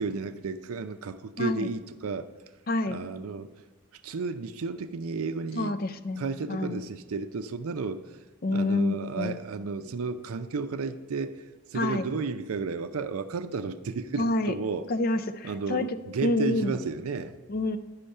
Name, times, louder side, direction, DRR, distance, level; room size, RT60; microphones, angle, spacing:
voice 1, 0.0-2.3 2.9-3.5 4.0-5.8 6.2-8.2 8.5-11.4 11.7-14.9 15.4-15.9 16.1-17.3, right 4 dB, 85° right, 0.5 m, -33 dB
voice 2, 1.4-1.7 2.7-3.0 5.5-6.8 8.4-9.4 11.7-12.1 14.2-14.5 14.9-16.8 17.5-17.8, left 2 dB, 45° left, 0.4 m, -28 dB
10.0 x 5.6 x 5.4 m
head